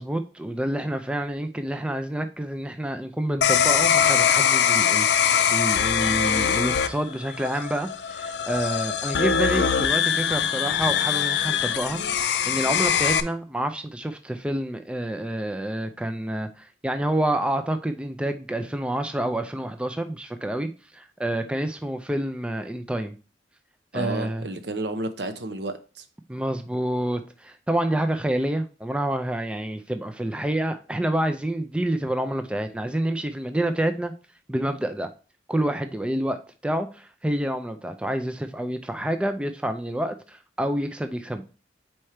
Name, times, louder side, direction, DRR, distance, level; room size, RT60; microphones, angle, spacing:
voice 1, 0.0-23.2 23.9-24.4 26.3-34.1 34.5-35.1 35.5-41.4, right 1 dB, 5° right, 0.4 m, -28 dB
sound 1, 3.4-13.2, left 8 dB, 70° left, 0.4 m, -22 dB
voice 2, 23.9-26.0, right 2 dB, 70° right, 0.8 m, -31 dB
4.4 x 4.4 x 4.9 m
head